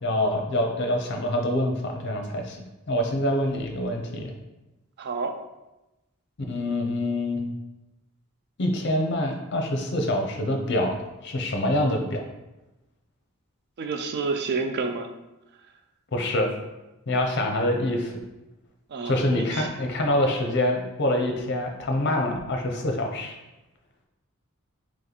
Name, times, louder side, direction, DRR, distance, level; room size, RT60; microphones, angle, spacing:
voice 1, 0.0-2.6 2.9-4.3 6.5-7.4 8.6-11.0 11.2-12.2 16.1-16.5 17.1-18.1 19.1-23.3, left 1 dB, 55° left, 3 dB, 0.6 m, -25 dB
voice 2, 5.0-5.3 13.8-15.1 18.9-19.7, right 4 dB, 50° right, 6 dB, 0.3 m, -29 dB
3.0 x 3.0 x 4.0 m, 0.99 s
head